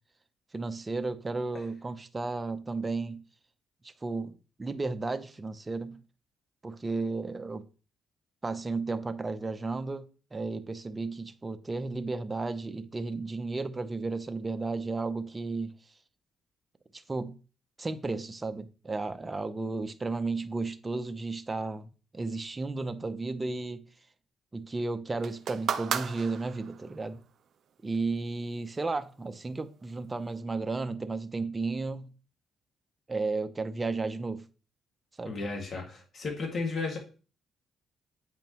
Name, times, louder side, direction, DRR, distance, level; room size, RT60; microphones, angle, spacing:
voice 1, 0.5-3.2 3.8-6.0 6.6-7.6 8.4-10.1 10.3-15.7 16.9-17.4 17.8-21.9 22.1-23.8 24.5-27.2 27.8-32.1 33.1-34.4 35.2-35.4, right 3 dB, 25° right, 0.7 m, -33 dB
sound 1, 25.2-27.0 27.9-28.0, right 8 dB, 60° right, 0.6 m, -34 dB
voice 2, 35.2-37.0, left 3 dB, 50° left, 2.1 m, -34 dB
8.7 x 5.2 x 3.0 m
cardioid pair, 90°, 0 cm